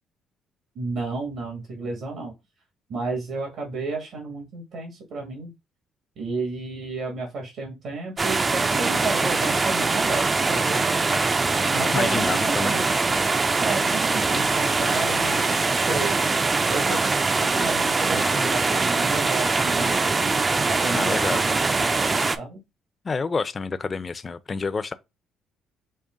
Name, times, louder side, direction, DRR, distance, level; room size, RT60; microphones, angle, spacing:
voice 1, 0.8-2.3 2.9-5.5 6.2-10.8 11.7-12.9 13.6-16.2 16.6-20.3 20.6-22.6, right 3 dB, 65° right, 1.6 m, -32 dB
sound 1, 8.2-22.4, right 3 dB, 30° right, 0.5 m, -22 dB
voice 2, 11.9-12.8 19.8-19.9 20.9-21.5 23.0-24.9, left 4 dB, 35° left, 0.5 m, -28 dB
5.3 x 2.1 x 3.6 m
cardioid pair, 85°, 0 cm